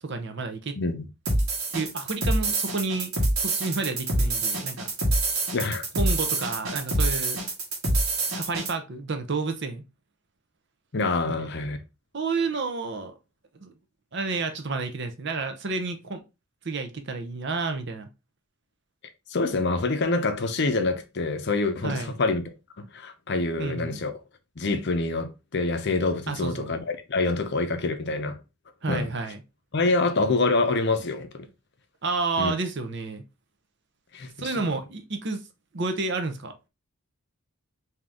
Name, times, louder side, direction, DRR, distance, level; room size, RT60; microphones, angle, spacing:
voice 1, 0.0-0.8 1.7-3.1 3.4-4.9 5.9-7.4 8.3-9.8 12.1-13.1 13.6-13.7 14.1-16.2 16.6-18.1 21.8-22.1 23.6-24.0 26.3-26.7 28.8-29.4 32.0-33.2 34.4-35.4 35.7-36.5, right 3 dB, 50° right, 0.7 m, -30 dB
sound 1, 1.3-8.7, right 2 dB, 70° right, 1.4 m, -26 dB
voice 2, 5.5-5.9 10.9-11.8 19.3-22.4 22.8-24.1 24.6-28.4 28.9-29.1 29.7-31.5 32.4-32.5 34.1-34.6, left 3 dB, 50° left, 0.6 m, -26 dB
3.8 x 2.8 x 3.4 m
head